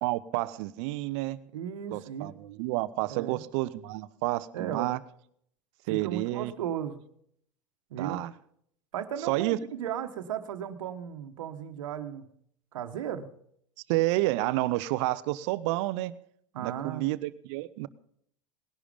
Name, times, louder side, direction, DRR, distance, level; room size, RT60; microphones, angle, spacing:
voice 1, 0.0-1.4 1.9-5.0 5.9-6.5 8.0-8.3 9.2-9.6 13.9-16.1 16.6-17.9, right 18 dB, 65° right, 16 dB, 0.9 m, -30 dB
voice 2, 1.5-2.3 3.1-3.4 4.5-4.9 5.9-7.0 7.9-8.2 8.9-12.3 12.7-13.3 16.5-17.0, right 9 dB, 80° right, 7 dB, 1.5 m, -35 dB
19.0 x 11.0 x 5.2 m, 0.67 s
hypercardioid pair, 95°, 17 cm